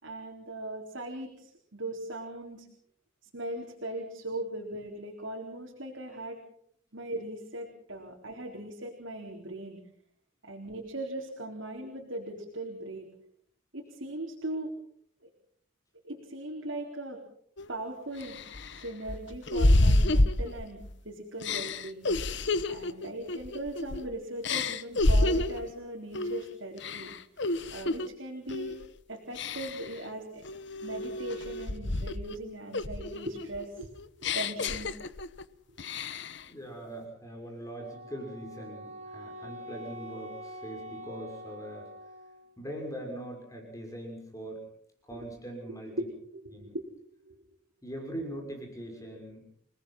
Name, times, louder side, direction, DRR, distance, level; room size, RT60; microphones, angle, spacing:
voice 1, 0.0-2.7 3.2-6.4 6.9-9.8 10.4-13.1 13.7-14.7 15.2-15.3 16.0-17.2 17.7-18.4 18.7-22.1 22.7-27.2 27.7-28.8 29.1-30.4 30.8-33.9 34.2-34.9 45.1-45.2 45.7-46.1 46.3-46.9 47.2-47.4, right 1 dB, 75° right, 0 dB, 4.2 m, -39 dB
sound 1, 17.6-17.7 18.2-20.9 21.4-24.1 24.4-25.7 26.1-26.4 26.8-28.1 28.5-28.8 29.3-29.9 30.4-32.4 32.7-35.4 35.8-36.4, left 2 dB, 60° left, 1.2 m, -28 dB
voice 2, 36.5-41.9 42.6-44.6 45.1-46.1 46.5-46.7 47.8-49.5, right 1 dB, 15° left, 2 dB, 6.1 m, -41 dB
Wind instrument woodwind instrument, 37.8-42.6, equal, 35° right, 4.6 m, -45 dB
29.5 x 19.0 x 5.7 m, 0.65 s
head